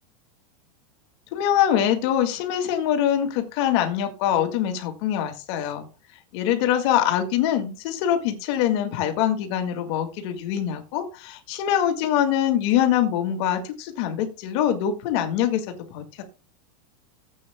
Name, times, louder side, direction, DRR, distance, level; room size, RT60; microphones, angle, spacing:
voice 1, 1.3-5.9 6.3-16.2, left 10 dB, 50° left, 6 dB, 2.0 m, -24 dB
16.0 x 8.4 x 2.2 m, 0.32 s
supercardioid pair, 165°, 19 cm